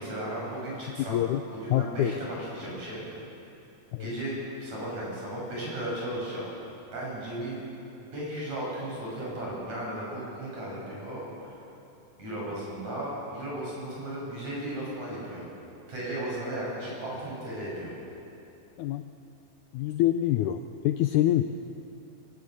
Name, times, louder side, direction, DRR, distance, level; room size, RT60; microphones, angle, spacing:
voice 1, 0.0-1.2 1.5-3.0 4.0-6.5 6.9-7.6 8.1-11.5 12.2-15.4 15.9-17.9, right 1 dB, 50° right, -5 dB, 7.9 m, -35 dB
voice 2, 1.0-1.4 1.7-2.1 3.9-4.1 18.8-19.0 19.7-21.5, left 13 dB, 90° left, 9 dB, 1.7 m, -26 dB
22.0 x 18.5 x 6.5 m, 2.8 s
omnidirectional pair, 4.1 m